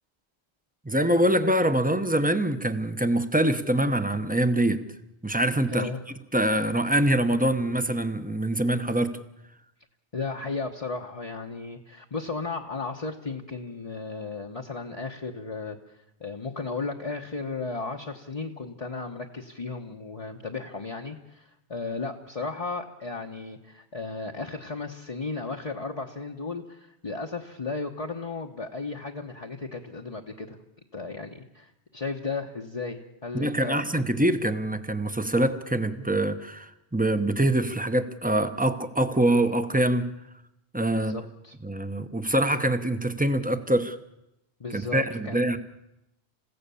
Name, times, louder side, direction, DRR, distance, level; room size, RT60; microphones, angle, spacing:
voice 1, 0.8-4.8 5.2-5.9 6.3-9.2 33.3-40.1 40.7-41.1 41.6-44.0 44.7-45.6, right 1 dB, 10° right, 1.0 m, -24 dB
voice 2, 5.7-6.0 10.1-30.6 30.9-33.8 40.9-41.6 44.6-45.6, left 3 dB, 35° left, 1.2 m, -35 dB
28.0 x 16.0 x 7.0 m
omnidirectional pair, 1.1 m